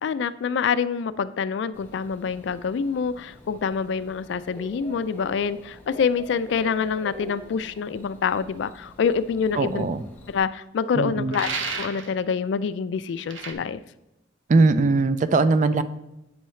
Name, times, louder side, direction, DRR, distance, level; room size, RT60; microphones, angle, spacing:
voice 1, 0.0-9.9 10.3-11.5 11.8-13.8, left 6 dB, 65° left, 15 dB, 0.3 m, -26 dB
Bird / Cricket, 1.7-10.4, left 2 dB, 10° left, 1.0 m, -45 dB
voice 2, 9.6-10.0 10.9-11.4 14.5-15.8, right 3 dB, 40° right, 12 dB, 0.3 m, -20 dB
sound 1, 11.3-12.1 13.3-13.5, right 4 dB, 80° right, 0.8 m, -31 dB
8.7 x 5.5 x 3.1 m, 0.92 s
head